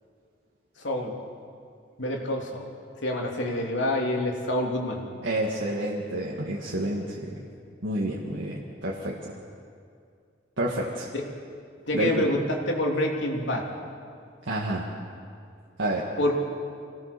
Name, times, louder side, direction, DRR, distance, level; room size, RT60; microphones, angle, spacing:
voice 1, 0.8-1.1 2.0-2.6 3.0-5.0 11.1-11.2 11.9-13.7 16.2-16.3, left 1 dB, 75° left, -1 dB, 3.2 m, -27 dB
voice 2, 5.2-7.4 7.8-9.3 10.6-11.1 11.9-12.3 14.4-14.9 15.8-16.1, right 1 dB, 85° right, -3 dB, 2.0 m, -29 dB
26.0 x 18.0 x 6.9 m, 2.3 s
head